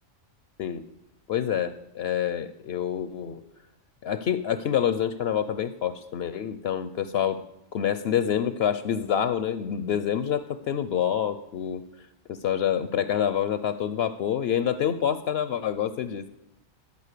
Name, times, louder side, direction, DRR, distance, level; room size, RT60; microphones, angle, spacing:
voice 1, 1.3-3.4 4.0-7.4 7.7-11.9 12.3-16.3, left 9 dB, 65° left, 12 dB, 0.7 m, -27 dB
13.5 x 5.2 x 6.7 m, 0.82 s
omnidirectional pair, 1.3 m